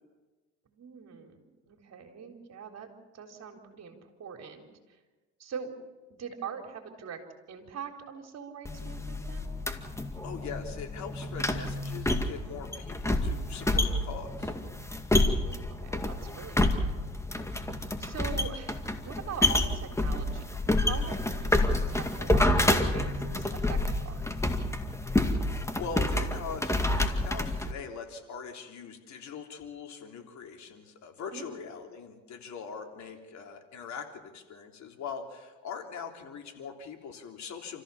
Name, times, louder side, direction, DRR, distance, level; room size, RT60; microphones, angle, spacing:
voice 1, 0.7-4.6 5.4-5.7 6.1-7.2 7.5-9.5 15.4-17.1 18.0-20.4 20.7-24.3 31.3-31.5, right 7 dB, 45° right, 4 dB, 4.0 m, -43 dB
sound 1, 8.7-27.7, left 1 dB, 10° left, 2.1 m, -29 dB
voice 2, 10.2-14.5 25.0-25.3 25.7-37.8, left 6 dB, 50° left, 4 dB, 3.4 m, -42 dB
28.5 x 14.5 x 7.1 m, 1.2 s
supercardioid pair, 85°, 36 cm